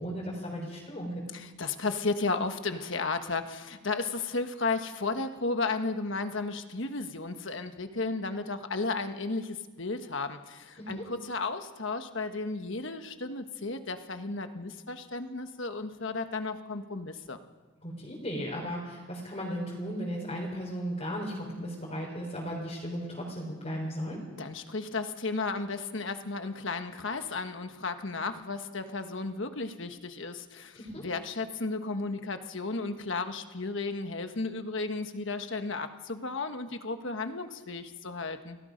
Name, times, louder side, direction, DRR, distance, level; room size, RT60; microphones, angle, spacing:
voice 1, 0.0-1.2 10.8-11.0 17.8-24.2 30.8-31.0, equal, 30° left, -4 dB, 3.7 m, -36 dB
voice 2, 1.3-17.4 24.4-38.6, left 3 dB, 60° left, 8 dB, 1.4 m, -34 dB
29.0 x 18.0 x 5.2 m, 1.3 s
head